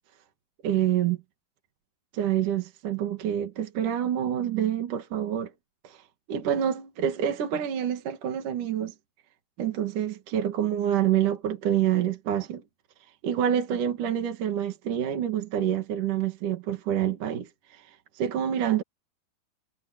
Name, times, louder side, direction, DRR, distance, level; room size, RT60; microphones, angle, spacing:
voice 1, 0.6-1.2 2.1-5.5 5.8-6.0 6.3-8.9 9.6-12.6 13.2-18.8, right 10 dB, 55° right, 3.5 m, -27 dB
omnidirectional pair, 4.5 m